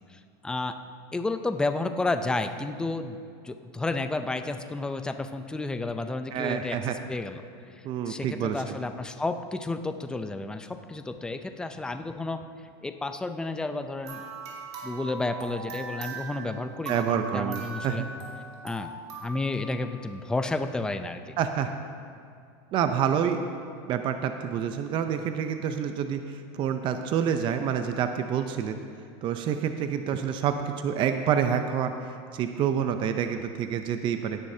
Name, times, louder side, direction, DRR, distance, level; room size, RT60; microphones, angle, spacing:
voice 1, 0.1-0.8 1.1-3.2 3.4-7.4 8.1-12.4 12.8-14.2 14.8-18.1 18.6-18.9 19.2-21.4, left 2 dB, 5° left, 8 dB, 0.4 m, -31 dB
voice 2, 6.3-7.0 7.8-8.6 16.9-18.1 21.4-21.7 22.7-23.4 23.9-28.8 29.2-34.4, right 8 dB, 40° right, 7 dB, 0.6 m, -28 dB
sound 1, 14.0-20.5, right 4 dB, 85° right, 2.8 m, -40 dB
17.0 x 9.9 x 2.8 m, 2.4 s
supercardioid pair, 135°, 14 cm